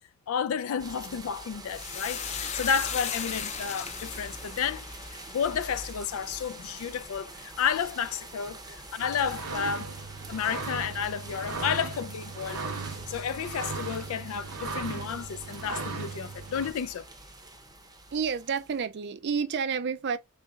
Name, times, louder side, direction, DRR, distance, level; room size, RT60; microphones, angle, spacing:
voice 1, 0.3-4.8 5.3-9.9 10.3-12.6 13.1-17.0, left 7 dB, 75° left, 0.4 m, -31 dB
sound 1, 0.8-18.8, right 2 dB, 15° right, 0.7 m, -45 dB
sound 2, 1.7-10.3 10.6-11.2 11.5-11.8, left 7 dB, 30° left, 0.6 m, -39 dB
sound 3, 9.0-16.7, right 4 dB, 80° right, 1.0 m, -37 dB
voice 2, 18.1-20.2, right 6 dB, 50° right, 0.4 m, -30 dB
3.9 x 3.9 x 2.3 m
head